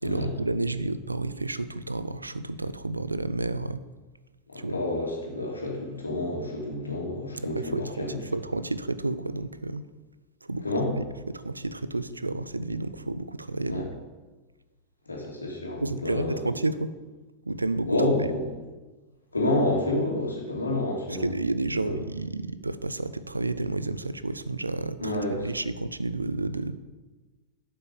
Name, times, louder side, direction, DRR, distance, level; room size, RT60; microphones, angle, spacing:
voice 1, 0.0-3.8 4.6-4.8 7.5-9.8 10.5-10.6 11.0-13.9 15.8-16.9 17.5-17.9 21.2-26.8, right 2 dB, 80° right, 14 dB, 0.5 m, -31 dB
voice 2, 4.5-8.2 10.6-10.9 13.6-13.8 15.1-16.4 17.9-18.4 19.3-21.2 21.7-21.9 25.0-25.5, left 2 dB, 80° left, -2 dB, 2.7 m, -29 dB
11.5 x 5.6 x 6.9 m, 1.2 s
figure-of-eight pair, 90°, 0 cm